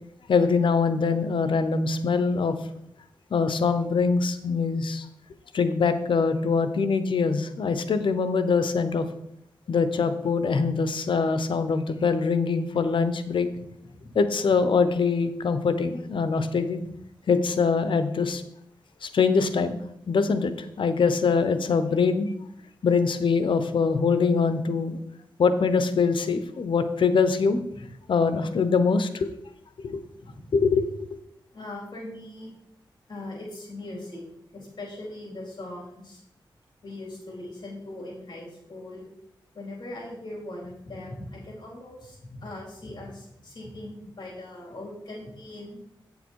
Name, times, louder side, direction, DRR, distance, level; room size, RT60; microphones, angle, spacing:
voice 1, 0.3-2.5 3.3-5.0 5.5-9.0 9.7-13.5 14.1-16.8 17.3-18.4 19.0-19.8 20.1-22.3 22.8-25.0 25.4-27.6 28.1-29.3 29.8-30.0 30.5-30.8, left 5 dB, 75° left, 10 dB, 0.8 m, -23 dB
voice 2, 29.9-30.4 31.5-32.5 33.1-34.2 34.5-36.2 36.8-39.1 39.5-45.8, left 1 dB, 55° left, -3 dB, 4.1 m, -40 dB
8.6 x 6.8 x 4.6 m, 0.78 s
cardioid pair, 75°, 9 cm